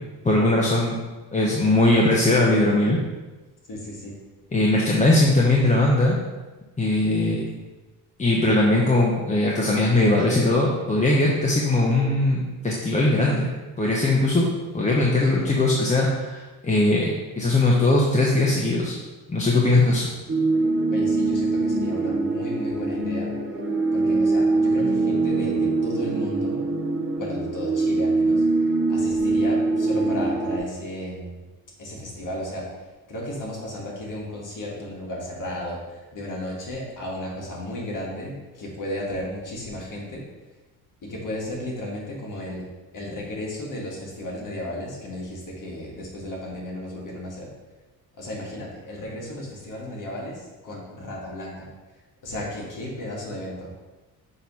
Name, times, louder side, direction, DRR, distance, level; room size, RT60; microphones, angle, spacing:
voice 1, 0.2-1.0 1.3-3.0 4.5-6.2 6.8-7.5 8.2-13.5 13.8-14.5 14.7-19.0 19.3-20.1, left 2 dB, 20° left, -3 dB, 0.9 m, -20 dB
voice 2, 3.7-4.2 20.9-23.3 23.9-26.7 27.2-28.5 28.9-31.4 31.8-40.2 41.0-42.7 42.9-47.5 48.2-51.7 52.2-53.7, left 1 dB, 55° left, -3 dB, 2.0 m, -34 dB
sound 1, 20.3-30.6, right 3 dB, 35° right, 1.3 m, -23 dB
6.5 x 3.1 x 5.6 m, 1.2 s
cardioid pair, 95°, 38 cm